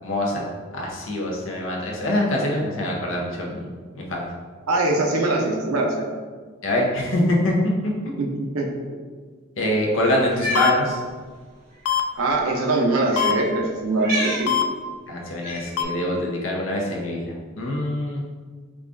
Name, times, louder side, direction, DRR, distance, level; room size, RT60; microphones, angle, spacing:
voice 1, 0.0-0.4 0.7-3.6 3.9-4.3 6.6-7.5 9.6-11.0 15.1-18.2, left 1 dB, 65° left, -2 dB, 0.7 m, -24 dB
voice 2, 4.7-6.1 8.2-8.8 10.4-10.5 12.2-14.6, right 2 dB, 90° right, 1 dB, 0.6 m, -22 dB
Cat, 10.3-10.7 11.8-11.9 13.1-13.4 14.0-14.5 15.4-15.8, equal, 40° right, 1.2 m, -28 dB
sound 1, 10.6-10.7 11.9-12.0 13.2-13.3 14.5-14.6 15.8-15.9, left 10 dB, 90° left, 0.3 m, -21 dB
4.9 x 2.3 x 2.4 m, 1.5 s
head